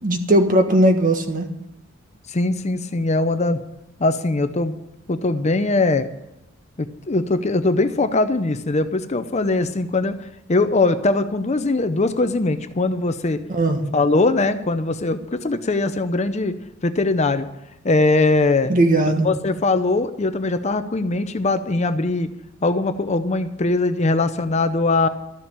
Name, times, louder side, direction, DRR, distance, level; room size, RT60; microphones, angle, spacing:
voice 1, 0.0-1.5 13.5-13.8 18.7-19.3, right 1 dB, 40° right, 5 dB, 1.5 m, -18 dB
voice 2, 2.3-3.6 4.0-4.8 5.1-6.1 6.8-10.1 10.5-13.4 13.9-16.6 16.8-17.5 17.8-18.7 19.1-22.3 22.6-25.1, left 2 dB, 30° left, 10 dB, 0.6 m, -21 dB
13.0 x 7.1 x 8.8 m, 0.85 s
head